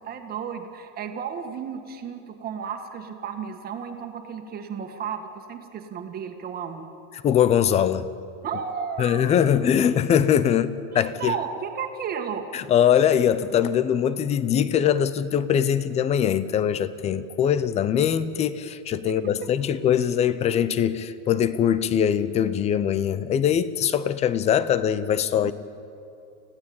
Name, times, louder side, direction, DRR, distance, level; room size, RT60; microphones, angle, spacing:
voice 1, 0.0-6.9 8.4-9.3 10.9-12.5 19.4-19.5, right 7 dB, 25° right, 1.8 m, -33 dB
voice 2, 7.2-8.1 9.0-11.3 12.5-25.5, left 9 dB, 15° left, 0.5 m, -22 dB
26.0 x 16.0 x 8.7 m
supercardioid pair, 160°, 39 cm